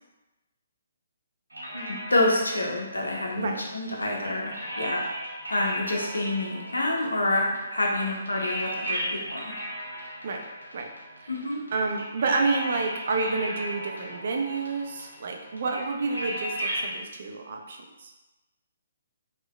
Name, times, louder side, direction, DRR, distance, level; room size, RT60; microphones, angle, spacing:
sound 1, 1.5-16.9, equal, 90° right, 0.8 m, -36 dB
voice 1, 1.7-5.0 5.5-9.5 11.3-11.6, left 2 dB, 80° left, -1 dB, 0.5 m, -27 dB
voice 2, 11.7-18.1, right 3 dB, 50° right, 2 dB, 0.4 m, -29 dB
3.2 x 2.1 x 2.2 m, 1.1 s
figure-of-eight pair, 135°, 0 cm